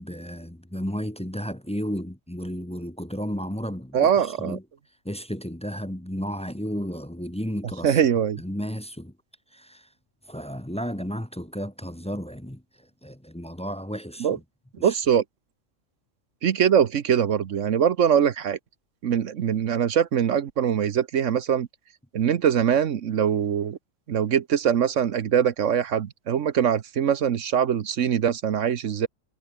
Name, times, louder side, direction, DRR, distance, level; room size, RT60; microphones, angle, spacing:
voice 1, 0.0-4.1 4.4-4.6 5.0-7.9 8.4-9.1 9.5-9.8 10.3-12.6 13.0-14.4 14.8-14.9, equal, 5° left, 0.9 m, -33 dB
voice 2, 3.9-4.6 7.8-8.4 14.2-14.4 14.8-15.2 16.4-18.6 19.0-21.7 22.1-23.8 24.1-29.1, right 8 dB, 70° right, 1.3 m, -22 dB
omnidirectional pair, 1.4 m